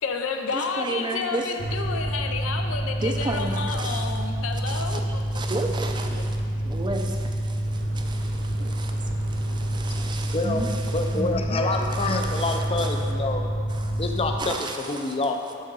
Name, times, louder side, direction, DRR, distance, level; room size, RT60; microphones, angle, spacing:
voice 1, 0.0-5.7 6.1-6.2, left 5 dB, 80° left, 4 dB, 0.6 m, -31 dB
voice 2, 0.5-1.5 3.0-4.1 4.7-11.4 11.9-12.9 13.7-14.0 14.4-15.2, right 2 dB, 20° right, 3 dB, 0.4 m, -33 dB
Mechanical fan, 1.6-14.4, right 1 dB, 55° left, 1.3 m, -28 dB
sound 1, 7.6-13.2, right 1 dB, 45° right, 0.9 m, -46 dB
voice 3, 10.3-10.6 10.9-13.4 14.0-15.6, left 2 dB, 30° left, 4 dB, 0.5 m, -27 dB
7.1 x 6.3 x 3.9 m, 2.5 s
head